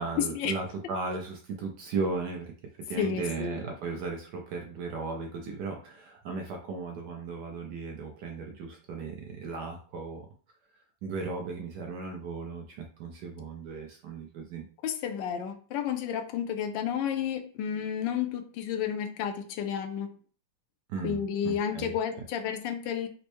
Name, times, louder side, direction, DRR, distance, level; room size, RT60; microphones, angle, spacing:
voice 1, 0.0-2.4 2.9-10.3 11.0-14.6 20.9-21.9, right 4 dB, 70° right, 2 dB, 1.0 m, -36 dB
voice 2, 3.0-3.6 14.8-20.1 21.0-23.1, left 8 dB, 80° left, 6 dB, 1.2 m, -31 dB
4.3 x 2.0 x 3.0 m, 0.41 s
omnidirectional pair, 2.1 m